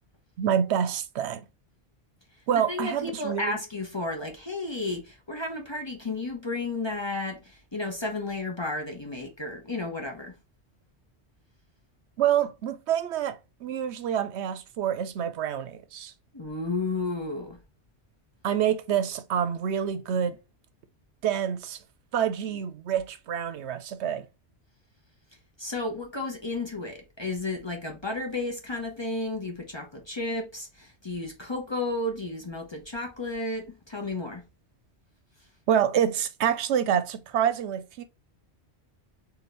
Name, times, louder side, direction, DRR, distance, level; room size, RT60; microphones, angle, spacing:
voice 1, 0.4-1.4 2.5-3.6 12.2-16.1 18.4-20.4 21.2-21.8 22.1-24.3 35.7-38.0, right 9 dB, 80° right, 0.9 m, -27 dB
voice 2, 2.5-10.4 16.3-17.6 25.6-34.4, left 2 dB, 30° left, 0.6 m, -32 dB
4.2 x 2.7 x 3.1 m
omnidirectional pair, 1.1 m